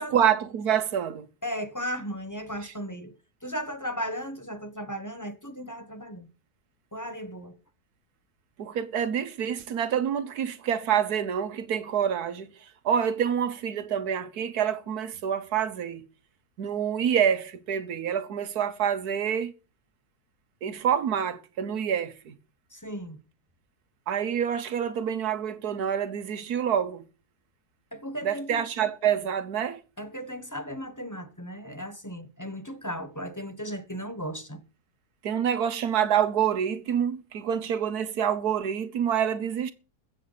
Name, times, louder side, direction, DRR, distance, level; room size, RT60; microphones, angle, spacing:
voice 1, 0.0-1.3 2.6-2.7 8.6-16.0 16.6-19.5 20.6-22.3 24.1-27.0 28.2-29.8 35.2-39.7, right 8 dB, 75° right, 1.5 m, -27 dB
voice 2, 1.4-3.1 3.4-6.3 6.9-7.5 22.7-23.2 27.9-28.6 30.0-34.6, equal, 15° left, 1.1 m, -36 dB
22.0 x 7.8 x 4.0 m
omnidirectional pair, 1.7 m